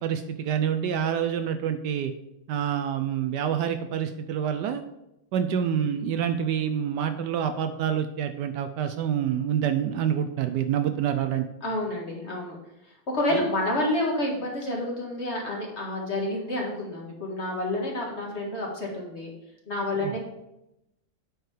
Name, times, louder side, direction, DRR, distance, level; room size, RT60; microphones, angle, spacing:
voice 1, 0.0-2.1 2.5-4.8 5.3-11.4 13.3-13.4 20.0-20.1, right 9 dB, 75° right, 8 dB, 1.1 m, -27 dB
voice 2, 11.6-12.6 13.1-19.3 19.7-20.2, left 1 dB, 40° left, -2 dB, 1.8 m, -29 dB
8.9 x 4.8 x 4.9 m, 0.89 s
omnidirectional pair, 2.0 m